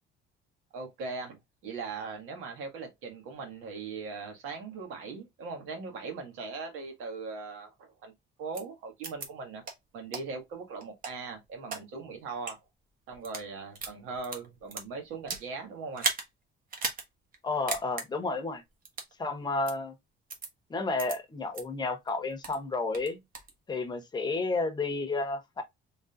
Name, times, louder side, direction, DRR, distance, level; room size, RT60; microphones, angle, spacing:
voice 1, 0.7-8.1 8.4-9.6 9.9-12.6 13.1-16.1, right 4 dB, 80° right, 1.8 m, -40 dB
sound 1, 8.5-8.6 9.0-9.3 9.6-9.7 10.1-10.2 10.8-11.8 12.3-12.5 13.1-13.5 13.8-15.5 15.9-16.3 16.7-17.0 17.3-17.4 17.7-18.1 18.9-19.1 19.7-19.8 20.3-20.5 21.0-21.1 21.5-21.6 22.1-22.6 22.9-23.5, right 4 dB, 45° right, 1.3 m, -35 dB
voice 2, 17.4-18.6 19.2-19.9 20.7-23.2 23.7-25.6, left 3 dB, 20° left, 1.0 m, -31 dB
3.9 x 3.6 x 2.4 m
cardioid pair, 130°, 21 cm